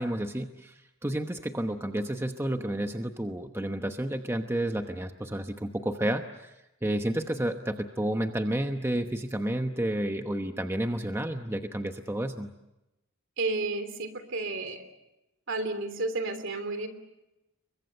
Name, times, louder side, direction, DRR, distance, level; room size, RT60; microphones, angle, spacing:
voice 1, 0.0-6.5 6.8-12.5, right 1 dB, 10° right, 6 dB, 1.0 m, -31 dB
voice 2, 13.4-14.8 15.5-16.9, right 2 dB, 60° right, 9 dB, 3.2 m, -31 dB
29.5 x 23.5 x 6.7 m, 0.93 s
head